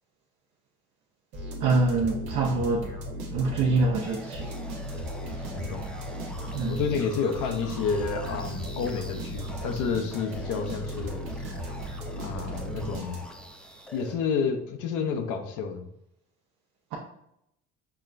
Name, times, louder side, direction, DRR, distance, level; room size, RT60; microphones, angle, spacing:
sound 1, 1.3-13.5, equal, 85° right, 1.0 m, -36 dB
voice 1, 1.6-2.9 3.3-4.5 6.5-6.9, right 3 dB, 70° right, 0.8 m, -25 dB
sound 2, 4.0-14.2, equal, 5° left, 0.5 m, -45 dB
voice 2, 5.5-5.9 6.7-11.3 12.2-13.2 13.9-15.9, left 6 dB, 75° left, 0.6 m, -30 dB
5.7 x 2.2 x 2.5 m
supercardioid pair, 80°, 31 cm